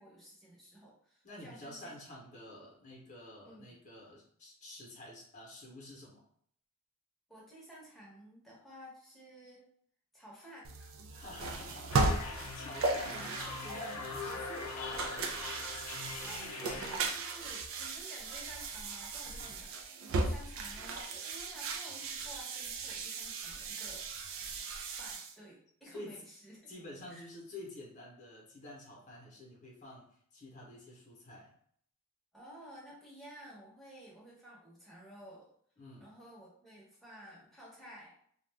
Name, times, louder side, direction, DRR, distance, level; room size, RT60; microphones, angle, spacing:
voice 1, 0.0-1.9 3.4-3.7 7.3-9.6 10.1-11.0 12.8-13.6 16.2-24.1 25.0-26.7 27.1-27.3 32.3-35.5 36.0-38.1, right 1 dB, ahead, -6 dB, 0.8 m, -53 dB
voice 2, 1.2-6.2 11.1-13.3 13.6-15.3 19.4-19.6 25.8-26.2 26.7-31.5 35.8-36.1, left 1 dB, 35° left, -3 dB, 0.8 m, -49 dB
sound 1, 10.6-25.3, right 3 dB, 60° right, 0.4 m, -37 dB
sound 2, 11.9-17.0, left 3 dB, 80° left, 0.5 m, -42 dB
2.4 x 2.2 x 3.2 m, 0.63 s
head